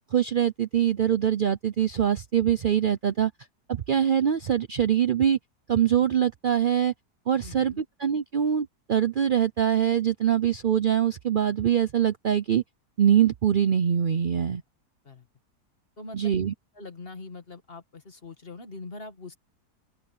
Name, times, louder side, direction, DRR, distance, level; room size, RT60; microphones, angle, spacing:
voice 1, 0.1-3.3 3.7-5.4 5.7-6.9 7.3-12.6 13.0-14.6 16.1-16.5, right 9 dB, 80° right, 0.4 m, -23 dB
voice 2, 7.4-7.8 15.0-15.3 16.0-16.4 16.7-19.4, left 3 dB, 35° left, 2.1 m, -42 dB
open air
omnidirectional pair, 1.7 m